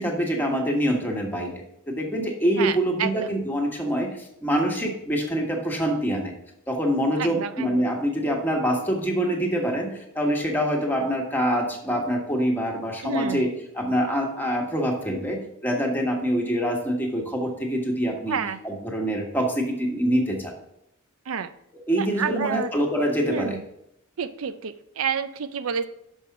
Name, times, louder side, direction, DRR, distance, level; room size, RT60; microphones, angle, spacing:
voice 1, 0.0-1.6 1.9-6.3 6.7-18.4 18.6-20.5 21.7-23.6, equal, 10° left, 0 dB, 1.4 m, -25 dB
voice 2, 2.6-3.1 7.2-7.8 13.0-13.4 18.3-18.6 21.3-21.5 22.0-22.7 23.3-23.6 24.2-25.9, right 7 dB, 85° right, 11 dB, 0.5 m, -29 dB
6.3 x 5.4 x 5.7 m, 0.78 s
head